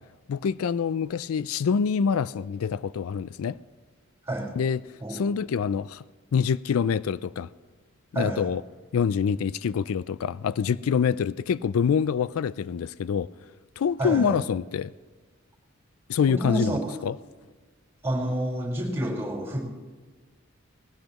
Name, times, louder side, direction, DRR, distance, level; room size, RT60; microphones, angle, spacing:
voice 1, 0.3-3.6 4.6-4.8 5.1-6.0 6.3-7.5 8.1-8.6 8.9-13.3 13.8-14.9 16.1-17.1, left 6 dB, 85° left, 0.4 m, -26 dB
voice 2, 8.1-8.5 14.0-14.4 16.3-16.8 18.0-19.6, right 1 dB, 10° right, 4.5 m, -28 dB
20.5 x 17.0 x 3.0 m
head